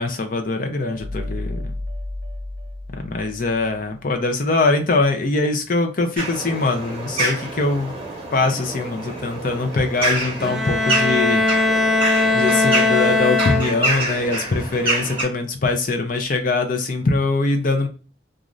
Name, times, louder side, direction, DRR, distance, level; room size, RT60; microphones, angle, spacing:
voice 1, 0.0-1.6 3.0-7.9 8.3-11.4 12.3-17.9, left 3 dB, 50° left, 4 dB, 0.6 m, -22 dB
sound 1, 0.8-4.0, left 1 dB, 70° right, 0.6 m, -32 dB
sound 2, 6.2-15.2, right 2 dB, 30° right, 1.1 m, -27 dB
Bowed string instrument, 10.4-14.1, left 3 dB, ahead, 0.3 m, -19 dB
2.5 x 2.5 x 3.1 m, 0.35 s
head